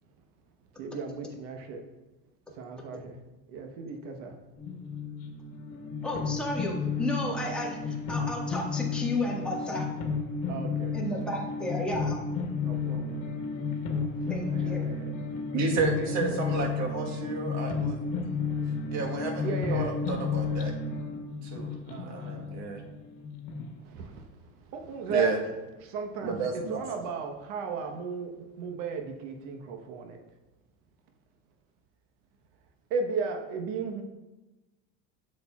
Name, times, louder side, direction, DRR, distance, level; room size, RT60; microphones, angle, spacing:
voice 1, 0.8-1.8 2.6-3.2 3.5-4.3 10.5-11.0 12.6-13.2 14.2-15.1 16.0-17.0 19.4-20.0 21.9-22.5 23.9-24.2 24.7-25.3 25.8-30.2 32.9-34.0, right 5 dB, 70° right, 5 dB, 1.2 m, -35 dB
sound 1, 4.6-23.7, left 5 dB, 65° left, 1.5 m, -32 dB
voice 2, 6.0-9.9 10.9-12.2 14.3-14.8, left 1 dB, 5° left, -3 dB, 1.6 m, -33 dB
voice 3, 15.5-18.0 18.9-20.7 21.4-21.7 22.1-22.8 25.1-25.4 26.2-26.8, right 4 dB, 50° right, 1 dB, 1.5 m, -31 dB
8.8 x 6.5 x 2.4 m, 1.1 s
supercardioid pair, 115°, 36 cm